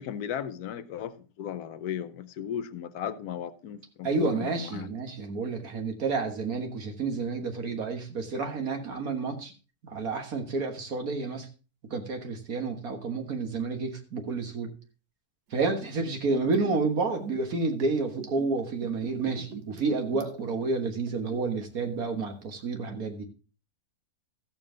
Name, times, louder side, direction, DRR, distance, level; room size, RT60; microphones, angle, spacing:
voice 1, 0.0-4.9, left 9 dB, 80° left, 1.3 m, -36 dB
voice 2, 4.0-9.5 9.9-11.5 11.9-14.7 15.5-23.3, right 4 dB, 70° right, 2.0 m, -30 dB
Liquid, 15.5-21.7 21.9-22.0, right 5 dB, 85° right, 1.8 m, -44 dB
14.0 x 7.1 x 3.8 m
omnidirectional pair, 1.6 m